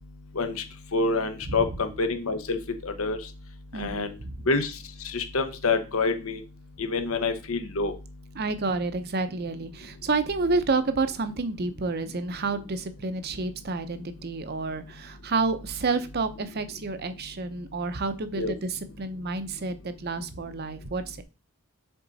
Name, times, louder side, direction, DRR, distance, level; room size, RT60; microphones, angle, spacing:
voice 1, 0.9-2.6 2.8-3.2 3.7-4.1 4.5-4.7 5.0-6.4 6.8-7.9 18.4-18.5, left 3 dB, 70° left, 7 dB, 1.0 m, -27 dB
voice 2, 3.7-4.5 8.4-21.2, right 3 dB, 50° right, 10 dB, 0.7 m, -29 dB
7.0 x 3.8 x 4.0 m, 0.31 s
head